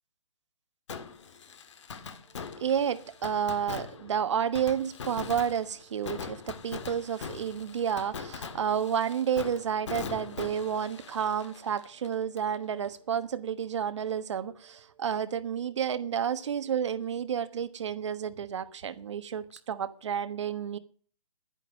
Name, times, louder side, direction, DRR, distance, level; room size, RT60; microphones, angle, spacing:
Fireworks, 0.9-12.6 12.8-12.9 19.6-19.7, left 6 dB, 55° left, 1.7 m, -42 dB
voice 1, 2.6-20.8, right 8 dB, 55° right, 1.3 m, -31 dB
11.0 x 10.5 x 6.0 m
hypercardioid pair, 165°, 18 cm